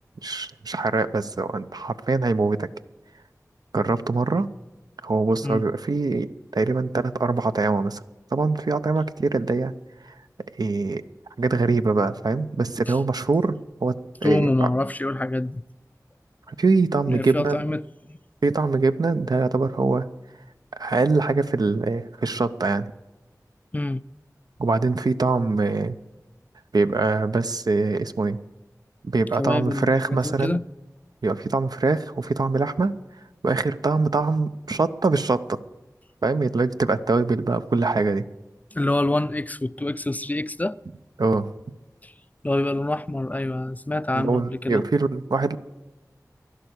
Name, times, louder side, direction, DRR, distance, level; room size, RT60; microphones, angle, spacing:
voice 1, 0.2-2.7 3.7-4.5 5.0-8.0 8.3-9.7 10.0-10.1 10.6-11.0 11.4-14.7 16.5-17.6 18.4-20.1 20.7-22.9 24.6-26.0 26.7-28.4 29.0-30.6 31.2-32.9 33.4-35.6 36.2-38.2 41.2-41.5 44.1-45.6, right 3 dB, 80° right, 0.6 m, -23 dB
voice 2, 14.2-15.6 17.1-18.2 23.7-24.0 29.4-30.7 38.7-40.8 42.0-42.1 42.4-44.8, left 1 dB, 25° left, 0.3 m, -26 dB
11.5 x 11.5 x 8.1 m
wide cardioid pair, 50°, 7 cm